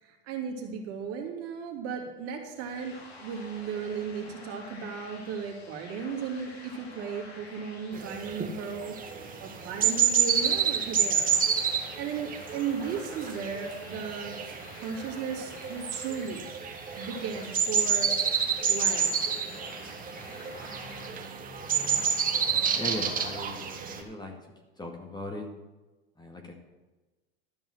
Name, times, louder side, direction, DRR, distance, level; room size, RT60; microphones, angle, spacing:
voice 1, 0.0-9.0 9.4-11.4 11.7-14.3 14.8-16.5 17.0-18.1 18.7-19.4, right 6 dB, 50° right, 1 dB, 2.8 m, -36 dB
sound 1, 2.5-21.1, left 3 dB, 80° left, 2.9 m, -49 dB
sound 2, 7.9-24.0, right 7 dB, 25° right, 1.7 m, -29 dB
voice 2, 22.7-23.7 24.0-24.3 24.8-25.5 26.2-26.5, left 1 dB, 15° left, 2 dB, 2.0 m, -38 dB
13.0 x 5.5 x 7.8 m, 1.2 s
hypercardioid pair, 105°, 31 cm